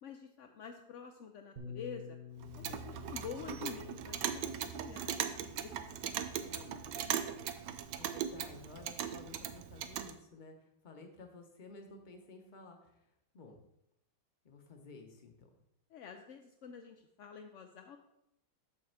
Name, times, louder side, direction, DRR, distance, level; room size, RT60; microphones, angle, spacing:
voice 1, 0.0-2.2 2.5-7.1 15.9-18.0, left 6 dB, 75° left, 5 dB, 0.7 m, -48 dB
Bass guitar, 1.6-7.8, left 7 dB, 35° right, 1.2 m, -52 dB
Clock, 2.4-10.1, right 9 dB, 85° right, 1.2 m, -39 dB
voice 2, 7.9-13.6 14.4-15.5, left 3 dB, 35° left, 4 dB, 0.8 m, -54 dB
7.6 x 3.5 x 6.5 m, 0.82 s
omnidirectional pair, 1.9 m